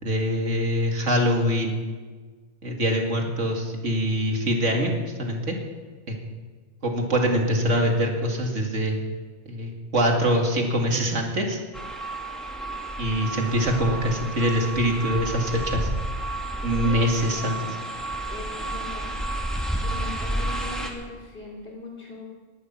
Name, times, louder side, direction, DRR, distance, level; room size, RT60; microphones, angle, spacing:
voice 1, 0.0-1.8 2.6-5.6 6.1-6.2 6.8-9.0 9.5-11.6 13.0-15.9 16.6-17.8, equal, 85° right, 1 dB, 2.5 m, -24 dB
sound 1, 11.7-20.9, right 1 dB, ahead, 1.9 m, -31 dB
voice 2, 16.6-17.6 18.2-19.1 19.8-22.2, left 2 dB, 50° left, -6 dB, 3.2 m, -39 dB
18.5 x 11.5 x 5.9 m, 1.4 s
omnidirectional pair, 1.2 m